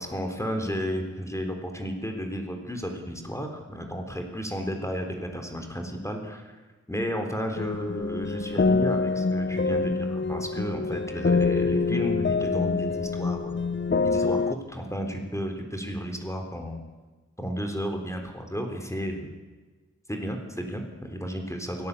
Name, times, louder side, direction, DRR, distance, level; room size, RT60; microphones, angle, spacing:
voice 1, 0.0-6.6 6.9-13.7 14.0-16.8 17.4-19.3 20.1-21.9, equal, 10° left, 3 dB, 3.8 m, -33 dB
sound 1, 7.6-14.5, left 4 dB, 40° left, 0.8 m, -25 dB
28.0 x 18.0 x 8.5 m, 1.3 s
wide cardioid pair, 70°, 30 cm